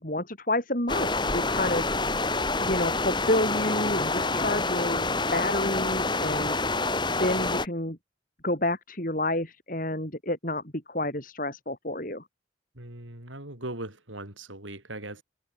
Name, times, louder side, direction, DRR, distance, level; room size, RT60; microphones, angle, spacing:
voice 1, 0.0-1.8 2.6-6.5 7.2-8.0 8.4-10.6 10.9-12.2, left 1 dB, 45° left, 6.1 m, -29 dB
sound 1, 0.9-7.7, left 3 dB, 25° left, 5.7 m, -27 dB
voice 2, 12.8-15.2, right 1 dB, 90° right, 7.8 m, -39 dB
head